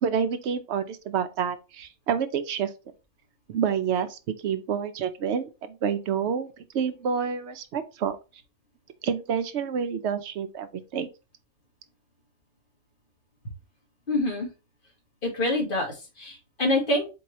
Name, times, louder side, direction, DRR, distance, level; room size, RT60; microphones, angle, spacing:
voice 1, 0.0-2.7 3.5-8.2 9.0-11.1, right 7 dB, 70° right, 0.8 m, -28 dB
voice 2, 14.1-14.5 15.2-17.1, left 1 dB, 45° left, 1.6 m, -26 dB
4.5 x 3.0 x 2.9 m
omnidirectional pair, 1.3 m